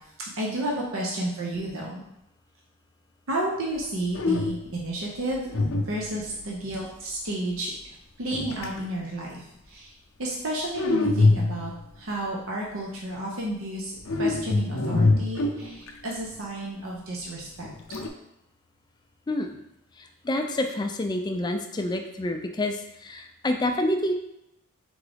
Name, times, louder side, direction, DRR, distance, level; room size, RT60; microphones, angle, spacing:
voice 1, 0.4-2.0 3.3-7.7 8.2-9.4 9.7-9.9 10.2-11.7 12.0-13.9 14.2-17.7, right 1 dB, 75° right, -3 dB, 0.7 m, -31 dB
sound 1, 3.8-3.9 4.1-4.8 5.5-6.4 8.3-8.8 10.7-11.8 14.0-16.1 17.6-18.1, left 3 dB, 75° left, 0.5 m, -24 dB
voice 2, 20.2-22.8 23.0-24.1, left 1 dB, 20° left, 5 dB, 0.3 m, -27 dB
3.8 x 3.6 x 3.4 m, 0.86 s
head